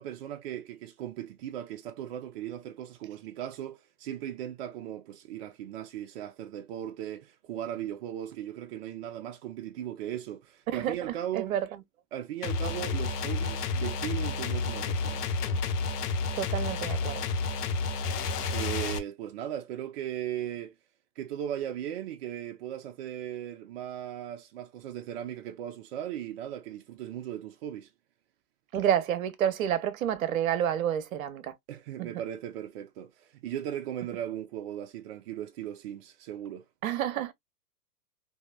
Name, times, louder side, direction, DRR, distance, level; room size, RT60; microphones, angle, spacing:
voice 1, 0.0-11.5 12.1-15.3 18.5-20.8 21.2-27.9 31.7-36.7, right 11 dB, 40° right, 0.5 m, -37 dB
voice 2, 10.7-11.7 16.4-17.3 28.7-31.6 32.0-32.1 36.8-37.3, right 10 dB, 60° right, 0.9 m, -29 dB
sound 1, 12.4-19.0, left 4 dB, 80° left, 1.0 m, -30 dB
3.8 x 2.7 x 2.2 m
hypercardioid pair, 120°, 46 cm